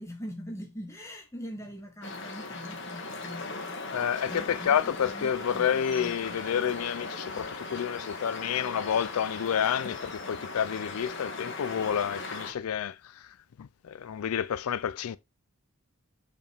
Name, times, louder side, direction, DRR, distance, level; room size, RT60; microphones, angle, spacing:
voice 1, 0.0-3.8 4.3-6.4, equal, 15° left, 1.3 m, -43 dB
sound 1, 2.0-12.5, left 3 dB, 55° left, 1.7 m, -38 dB
voice 2, 3.9-12.9 13.6-15.2, left 8 dB, 80° left, 0.4 m, -29 dB
7.2 x 5.3 x 3.4 m
head